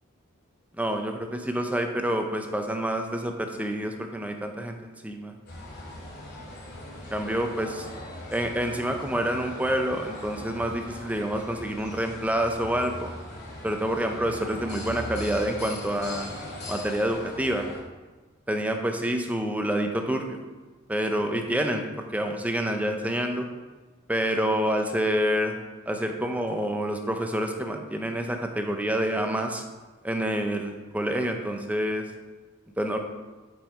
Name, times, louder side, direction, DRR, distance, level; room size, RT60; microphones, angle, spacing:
voice 1, 0.8-5.3 7.1-7.9 8.3-13.1 13.6-16.3 16.7-17.7 18.5-20.4 20.9-23.5 24.1-25.5 25.9-29.6 30.0-32.1 32.8-33.0, equal, 5° right, 4 dB, 0.6 m, -27 dB
sound 1, 5.5-17.8, left 1 dB, 55° left, 2.4 m, -40 dB
7.5 x 5.5 x 4.3 m, 1.3 s
head